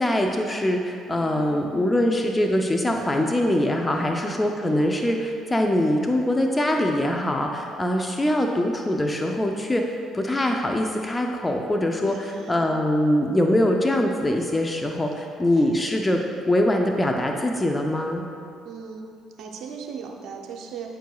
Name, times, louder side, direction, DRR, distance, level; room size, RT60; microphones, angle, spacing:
voice 1, 0.0-9.8 10.1-16.2 16.5-18.2, left 1 dB, 20° left, 2 dB, 0.6 m, -23 dB
voice 2, 1.1-2.2 3.0-3.3 3.9-4.1 12.0-12.7 15.5-16.1 18.6-19.1 19.4-21.0, right 6 dB, 65° right, 2 dB, 0.7 m, -39 dB
9.0 x 4.6 x 2.3 m, 2.4 s
hypercardioid pair, 55°, 0 cm